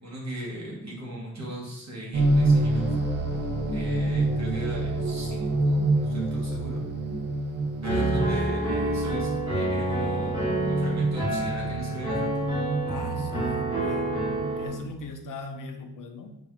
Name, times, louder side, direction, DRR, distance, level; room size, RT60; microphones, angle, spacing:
voice 1, 0.0-2.9 3.7-6.8 7.8-12.5, right 1 dB, 50° right, -4 dB, 1.2 m, -38 dB
sound 1, 2.1-14.9, right 2 dB, 30° right, 0.6 m, -28 dB
Piano, 7.8-14.7, right 2 dB, 15° right, 1.2 m, -28 dB
voice 2, 12.9-14.1 14.6-16.4, left 3 dB, 60° left, 5 dB, 0.5 m, -39 dB
3.9 x 2.4 x 2.9 m, 0.84 s
wide cardioid pair, 130°, 36 cm